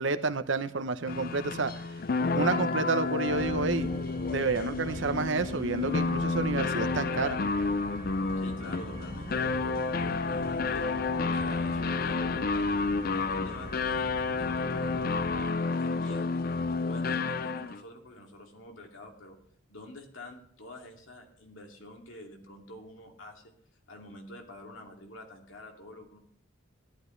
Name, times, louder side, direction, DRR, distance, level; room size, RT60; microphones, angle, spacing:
voice 1, 0.0-1.7 2.4-3.9 4.3-7.4, right 4 dB, 70° right, 11 dB, 0.8 m, -30 dB
sound 1, 1.1-17.8, left 4 dB, 45° left, 0.4 m, -30 dB
sound 2, 3.3-15.5, right 2 dB, 35° right, 0.8 m, -43 dB
voice 2, 8.4-12.5 13.1-14.9 15.8-16.4 16.8-19.4 19.7-23.5 23.9-26.2, left 1 dB, 80° left, 2 dB, 2.5 m, -47 dB
14.5 x 11.5 x 3.3 m, 0.67 s
head